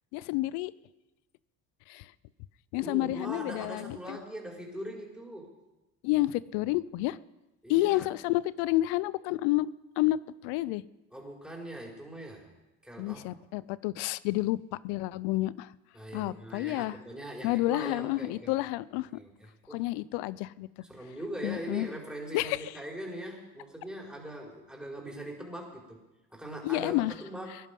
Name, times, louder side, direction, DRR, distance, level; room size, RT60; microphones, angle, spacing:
voice 1, 0.1-0.7 1.9-2.1 2.7-4.2 6.0-7.2 7.7-9.7 10.0-10.2 10.4-10.8 13.0-14.6 14.8-15.7 16.1-17.0 17.4-19.2 19.7-20.7 21.4-21.9 22.3-22.6 26.6-27.1, left 17 dB, 80° left, 20 dB, 0.6 m, -29 dB
voice 2, 2.7-5.5 7.6-8.1 11.1-12.5 12.8-13.3 15.9-18.5 19.1-19.9 20.8-26.0 26.3-27.6, right 1 dB, ahead, -1 dB, 5.2 m, -41 dB
20.0 x 11.0 x 5.4 m, 1.0 s
hypercardioid pair, 55°, 41 cm